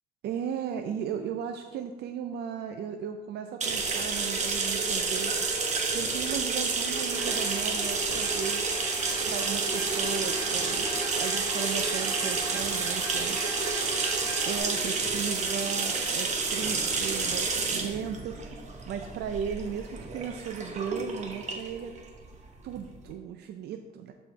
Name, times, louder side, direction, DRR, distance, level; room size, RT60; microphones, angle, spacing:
voice 1, 0.2-5.6 5.9-8.7 9.3-10.9 11.2-13.4 14.5-21.9 22.6-24.1, right 8 dB, 80° right, 6 dB, 0.5 m, -36 dB
sound 1, 3.6-23.0, right 4 dB, 45° right, 1.0 m, -30 dB
sound 2, 6.9-14.6, right 3 dB, 25° right, 1.0 m, -39 dB
12.0 x 4.4 x 3.3 m, 1.2 s
cardioid pair, 145°, 17 cm